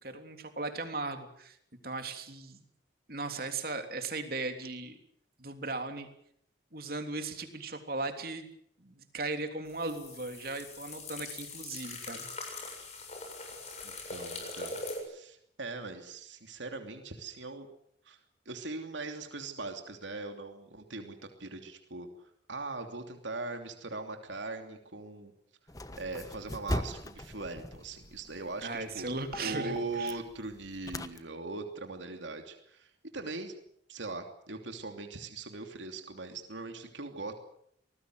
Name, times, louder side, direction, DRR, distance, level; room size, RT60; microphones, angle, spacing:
voice 1, 0.0-1.6 1.8-2.6 3.1-5.0 5.4-6.1 6.7-8.5 8.8-12.3 28.6-30.2, right 3 dB, 50° right, 6 dB, 3.3 m, -37 dB
sound 1, 9.7-15.0, left 3 dB, 35° left, 7.3 m, -42 dB
voice 2, 13.8-14.8 15.1-17.7 18.0-18.2 18.4-22.1 22.5-25.3 26.0-28.7 28.9-29.1 29.4-33.5 33.9-37.3, right 3 dB, 80° right, 5 dB, 3.0 m, -40 dB
sound 2, 25.7-31.2, left 1 dB, 20° left, 1.3 m, -40 dB
25.5 x 19.5 x 7.9 m, 0.67 s
head